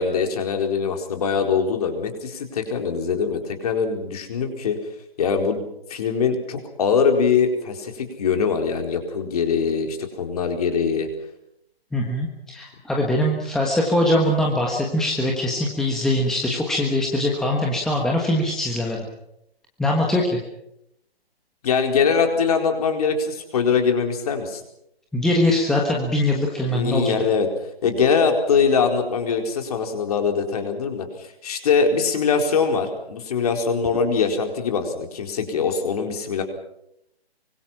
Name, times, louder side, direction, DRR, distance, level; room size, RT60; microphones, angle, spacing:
voice 1, 0.0-4.8 5.2-5.6 5.9-11.1 21.6-24.6 26.7-27.5 27.8-36.4, left 5 dB, 35° left, 5 dB, 4.4 m, -22 dB
voice 2, 11.9-19.0 19.8-20.4 25.1-27.1, left 1 dB, ahead, -1 dB, 1.4 m, -22 dB
24.5 x 24.5 x 5.8 m, 0.77 s
hypercardioid pair, 160°, 32 cm